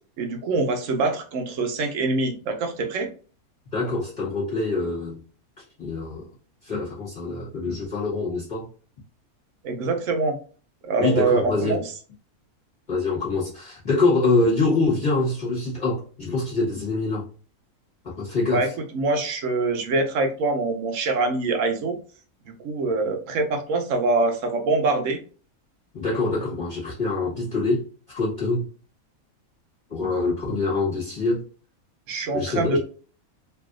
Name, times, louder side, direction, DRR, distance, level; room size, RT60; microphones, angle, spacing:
voice 1, 0.2-3.1 9.6-10.4 10.9-11.8 18.5-18.7 18.9-22.0 22.5-25.2 32.1-32.8, right 3 dB, 65° right, 1.0 m, -24 dB
voice 2, 3.7-5.2 5.8-6.3 6.6-8.7 11.0-11.8 12.9-17.2 18.0-18.7 25.9-27.9 28.1-28.7 29.9-31.4 32.3-32.8, left 3 dB, 35° left, 1.3 m, -25 dB
3.2 x 2.6 x 2.3 m
omnidirectional pair, 1.5 m